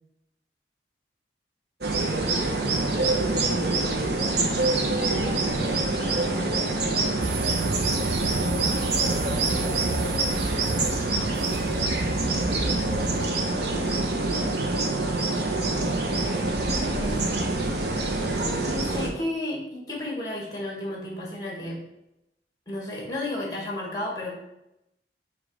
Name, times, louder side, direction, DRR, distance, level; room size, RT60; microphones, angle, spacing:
sound 1, 1.8-19.1, right 2 dB, 70° right, 0.9 m, -26 dB
voice 1, 1.9-7.4 8.1-11.0 12.2-13.9 16.0-16.4, equal, 25° right, -1 dB, 0.7 m, -38 dB
sound 2, 7.2-13.3, right 3 dB, 50° right, 0.4 m, -31 dB
voice 2, 16.3-17.3 18.4-21.8 22.7-24.3, left 1 dB, 20° left, -3 dB, 2.0 m, -33 dB
5.1 x 4.9 x 4.9 m, 0.87 s
head